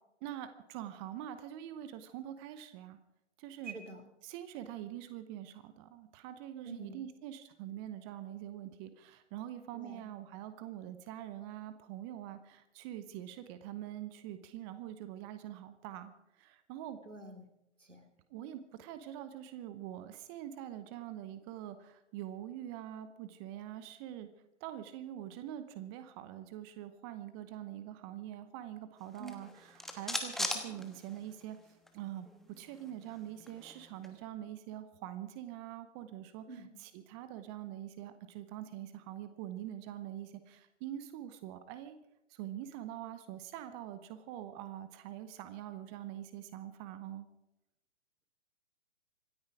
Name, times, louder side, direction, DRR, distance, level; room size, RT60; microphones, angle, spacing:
voice 1, 0.2-3.0 3.4-3.7 4.2-16.1 16.4-17.0 18.3-24.3 24.6-31.6 31.9-42.0 42.3-47.3, right 12 dB, 20° right, 11 dB, 0.8 m, -44 dB
voice 2, 3.6-4.0 6.6-7.0 9.7-10.0 17.0-17.5 17.8-18.1 29.2-29.4 36.5-36.7, right 3 dB, 90° right, 7 dB, 2.8 m, -46 dB
sound 1, 29.1-31.6 31.9-32.0 32.3-34.2, left 1 dB, ahead, 1.2 m, -40 dB
26.0 x 9.6 x 4.9 m, 0.88 s
figure-of-eight pair, 130°, 36 cm